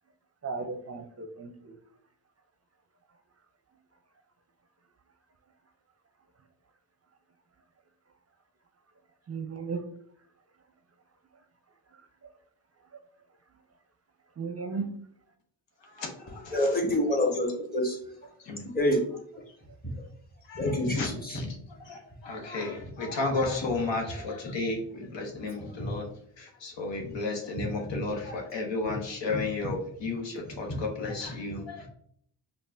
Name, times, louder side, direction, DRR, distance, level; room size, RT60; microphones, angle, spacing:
voice 1, 0.4-1.7 9.3-9.8 12.2-12.3 14.4-14.9, right 4 dB, 35° right, 6 dB, 0.5 m, -35 dB
voice 2, 15.8-16.8 18.4-18.6 20.5-26.1 26.4-31.9, left 3 dB, 75° left, 1 dB, 1.0 m, -33 dB
voice 3, 16.5-18.0 18.7-19.0 20.5-21.4 25.8-25.9, left 1 dB, 20° left, 0 dB, 1.3 m, -26 dB
5.2 x 2.4 x 2.5 m, 0.66 s
cardioid pair, 50°, 44 cm